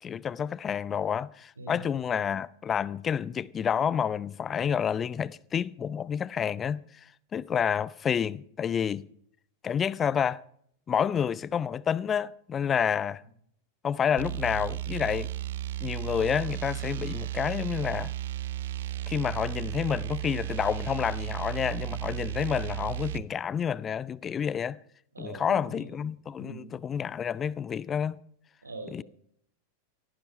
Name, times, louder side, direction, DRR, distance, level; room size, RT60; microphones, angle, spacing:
voice 1, 0.0-6.8 7.3-9.1 9.6-10.4 10.9-13.2 13.8-15.3 15.8-18.1 19.1-24.8 25.2-28.2 28.9-29.0, left 8 dB, 25° left, 0.5 m, -29 dB
sound 1, 14.2-23.3, right 13 dB, 60° right, 0.5 m, -34 dB
voice 2, 25.1-25.9 26.4-26.7 28.6-28.9, right 2 dB, 80° right, 4.1 m, -42 dB
17.5 x 15.5 x 4.3 m
figure-of-eight pair, 90°, 0 cm